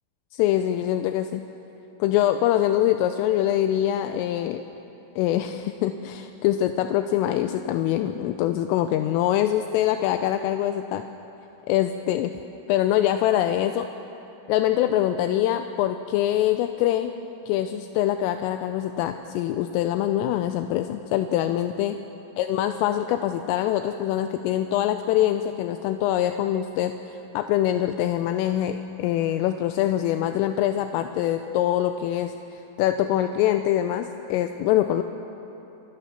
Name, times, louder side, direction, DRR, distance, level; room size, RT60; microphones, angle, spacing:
voice 1, 0.3-1.4 2.0-4.6 5.2-11.0 11.7-12.3 12.7-13.9 14.5-17.2 17.5-22.0 22.4-35.0, left 12 dB, 85° left, 8 dB, 3.2 m, -24 dB
27.5 x 20.5 x 6.8 m, 3.0 s
omnidirectional pair, 5.9 m